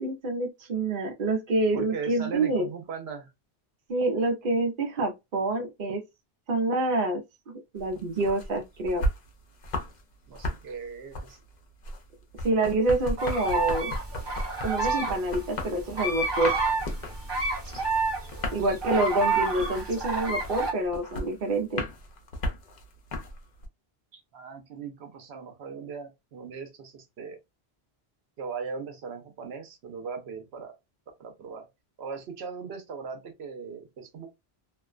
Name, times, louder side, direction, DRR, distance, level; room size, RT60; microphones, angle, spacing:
voice 1, 0.0-2.7 3.9-6.0 6.5-7.2 7.7-9.0 12.4-13.9 14.6-16.5 18.5-21.8, right 2 dB, 60° right, 0.8 m, -27 dB
voice 2, 1.7-3.3 10.3-11.4 18.2-18.7 24.3-27.4 28.4-30.8 31.2-31.7 32.0-34.3, right 5 dB, 90° right, 1.0 m, -39 dB
sound 1, 7.8-10.0 10.3-23.7, left 1 dB, 50° left, 0.7 m, -35 dB
sound 2, 13.2-20.7, right 3 dB, 25° right, 0.9 m, -29 dB
2.5 x 2.1 x 2.3 m
omnidirectional pair, 1.0 m